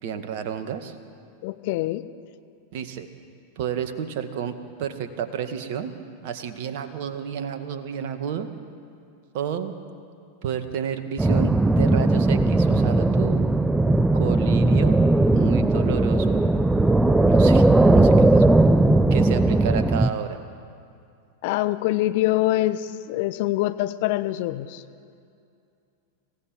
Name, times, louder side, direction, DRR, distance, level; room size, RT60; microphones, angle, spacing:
voice 1, 0.0-1.0 2.7-3.1 3.6-5.9 6.2-8.5 9.3-9.7 10.4-13.5 14.1-15.0 15.3-16.4 17.3-18.5 19.1-20.4, right 8 dB, 50° right, 8 dB, 1.9 m, -31 dB
voice 2, 1.4-2.0 21.4-24.8, left 15 dB, 50° left, 11 dB, 1.0 m, -24 dB
sound 1, 11.2-20.1, right 2 dB, 5° right, 0.7 m, -18 dB
25.5 x 16.5 x 8.6 m, 2.4 s
figure-of-eight pair, 90°, 0 cm